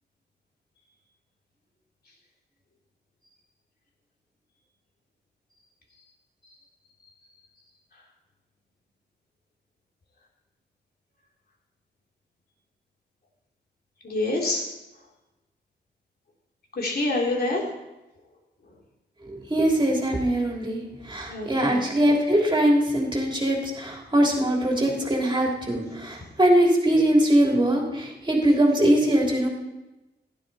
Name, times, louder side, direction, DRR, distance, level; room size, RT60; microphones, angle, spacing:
voice 1, 14.0-14.6 16.7-17.6 21.3-21.8, left 2 dB, 60° left, -1 dB, 3.3 m, -26 dB
voice 2, 19.2-29.5, right 1 dB, 25° right, -1 dB, 3.1 m, -22 dB
16.0 x 12.0 x 4.2 m, 1.0 s
wide cardioid pair, 115°, 18 cm